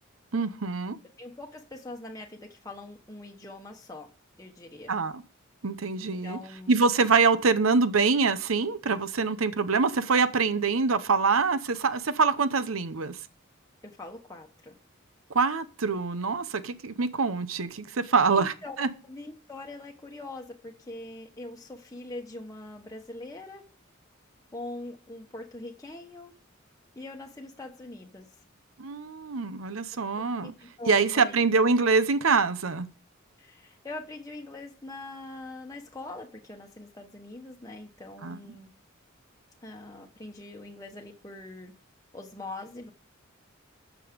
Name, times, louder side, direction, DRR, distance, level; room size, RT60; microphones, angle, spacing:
voice 1, 0.3-1.0 4.9-5.2 5.6-6.4 6.7-13.2 15.3-18.9 28.8-30.5 30.9-32.9 38.2-38.4, right 4 dB, 85° right, 0.8 m, -25 dB
voice 2, 1.2-4.1 4.4-4.9 6.2-6.8 13.8-14.7 18.4-23.6 24.5-26.3 26.9-28.3 30.2-31.4 33.4-38.7 39.6-41.7 42.1-42.9, left 2 dB, 15° left, 1.1 m, -42 dB
13.0 x 7.0 x 5.2 m
head